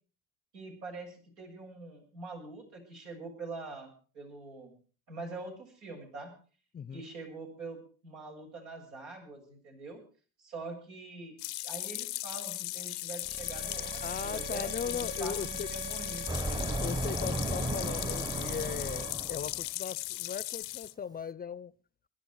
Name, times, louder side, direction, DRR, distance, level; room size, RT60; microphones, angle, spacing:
voice 1, 0.5-4.7 5.1-6.3 6.9-10.0 10.4-16.4, right 3 dB, 85° right, 0 dB, 7.1 m, -44 dB
voice 2, 6.7-7.1 14.0-15.7 16.8-21.7, left 7 dB, 25° left, 20 dB, 0.6 m, -38 dB
sound 1, 11.4-20.9, left 20 dB, 65° left, 0.7 m, -38 dB
sound 2, 13.1-19.1, right 4 dB, 30° right, 2.1 m, -42 dB
sound 3, 16.3-19.7, right 1 dB, 10° right, 1.0 m, -35 dB
22.0 x 11.0 x 4.7 m, 0.39 s
hypercardioid pair, 70°, 35 cm